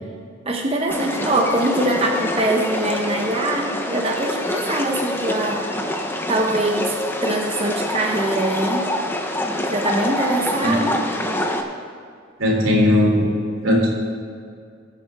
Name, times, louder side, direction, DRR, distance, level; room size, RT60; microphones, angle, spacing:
voice 1, 0.5-5.7 6.3-8.9 9.7-11.0, right 1 dB, 30° right, 0 dB, 0.9 m, -23 dB
sound 1, 0.9-11.6, left 1 dB, 10° left, 0.8 m, -26 dB
voice 2, 12.4-13.3 13.6-13.9, left 1 dB, 85° right, -2 dB, 3.3 m, -17 dB
20.5 x 8.3 x 3.6 m, 2.3 s
head